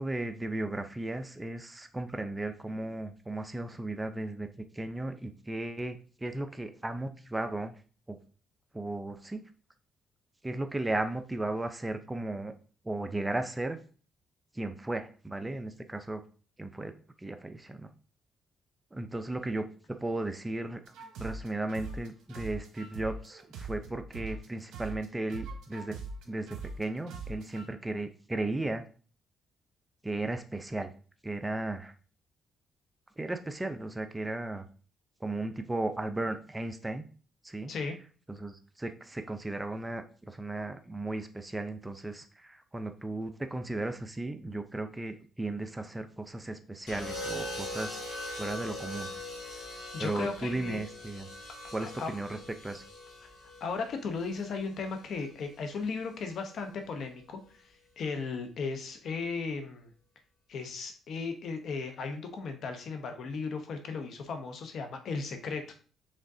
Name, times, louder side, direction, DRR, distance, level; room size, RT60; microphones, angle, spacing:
voice 1, 0.0-4.5 4.7-7.7 8.1-8.2 8.7-9.4 10.4-12.5 12.8-13.8 14.5-16.2 16.6-16.9 17.2-17.9 18.9-20.8 21.2-26.0 26.3-28.8 30.0-30.9 31.2-31.9 33.2-34.7 35.2-37.0 37.4-37.7 38.3-49.1 50.0-51.3 51.7-52.8, right 2 dB, 15° right, 8 dB, 0.5 m, -35 dB
sound 1, 20.9-24.5 24.7-27.7, right 4 dB, 85° right, 0.8 m, -41 dB
sound 2, 46.9-55.0 56.2-56.6, left 1 dB, 85° left, 2.2 m, -41 dB
voice 2, 49.9-50.8 51.8-52.1 53.6-59.9 60.5-65.7, left 4 dB, 65° left, 7 dB, 0.8 m, -36 dB
5.1 x 3.6 x 2.7 m, 0.39 s
cardioid pair, 90°, 0 cm